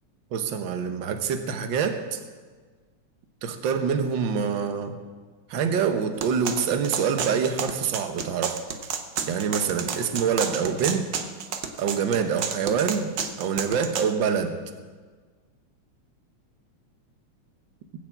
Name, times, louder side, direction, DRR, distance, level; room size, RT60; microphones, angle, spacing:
voice 1, 0.3-2.2 3.4-5.0 5.5-8.6 9.2-11.1 11.8-13.1 13.4-14.6, right 6 dB, 55° right, 7 dB, 1.4 m, -25 dB
sound 1, 6.2-14.1, right 6 dB, 80° right, 0.9 m, -31 dB
20.0 x 7.3 x 8.2 m, 1.5 s
omnidirectional pair, 3.3 m